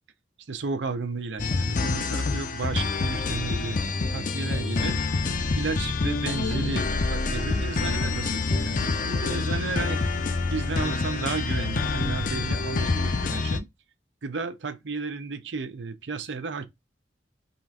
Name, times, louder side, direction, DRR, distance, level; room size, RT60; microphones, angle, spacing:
voice 1, 0.5-3.8 4.1-5.0 5.5-10.0 10.5-13.7 14.2-16.7, right 4 dB, 90° right, 0.6 m, -33 dB
sound 1, 1.4-13.6, left 3 dB, 50° left, 0.5 m, -27 dB
3.8 x 2.5 x 4.4 m
head